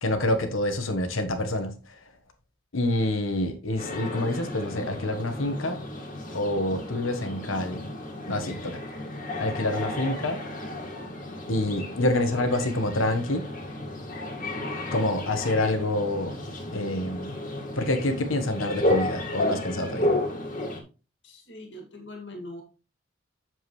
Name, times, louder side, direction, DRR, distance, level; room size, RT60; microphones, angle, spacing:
voice 1, 0.0-2.0 2.7-5.8 6.3-7.9 8.3-8.8 9.4-10.4 11.5-13.5 14.9-16.3 16.7-17.3 17.7-20.1, left 1 dB, 85° left, 1.3 m, -27 dB
sound 1, 3.8-20.8, left 1 dB, 40° left, 1.9 m, -32 dB
voice 2, 21.2-22.6, left 1 dB, 65° left, 2.1 m, -41 dB
7.9 x 7.3 x 3.2 m
head